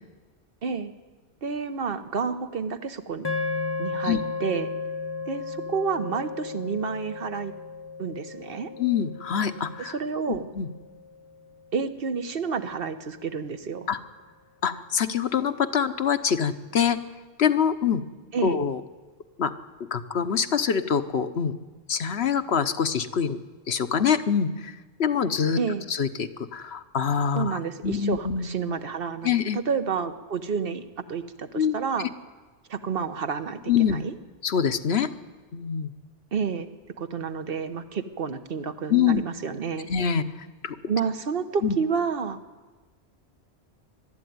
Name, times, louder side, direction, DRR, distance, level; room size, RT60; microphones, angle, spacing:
voice 1, 1.4-3.3 3.8-4.7 5.3-7.5 8.0-8.7 9.8-10.5 11.7-13.9 18.3-18.6 25.6-25.8 27.3-32.1 32.7-34.1 36.3-36.7 37.0-39.9 40.9-42.4, right 5 dB, 55° right, 10 dB, 1.2 m, -30 dB
sound 1, 3.2-11.6, left 4 dB, 25° left, 0.7 m, -35 dB
voice 2, 8.8-9.9 10.3-10.7 13.9-14.0 14.6-17.0 17.4-18.0 18.4-18.8 19.4-19.5 19.9-21.5 21.9-23.4 23.7-24.7 25.0-25.6 25.9-28.5 29.2-29.6 31.5-32.1 33.7-34.0 34.4-35.1 35.5-35.9 38.9-39.2 39.9-40.2 40.6-40.8 41.6-41.8, left 7 dB, 60° left, 10 dB, 1.2 m, -25 dB
21.5 x 13.0 x 9.4 m, 1.3 s
omnidirectional pair, 1.2 m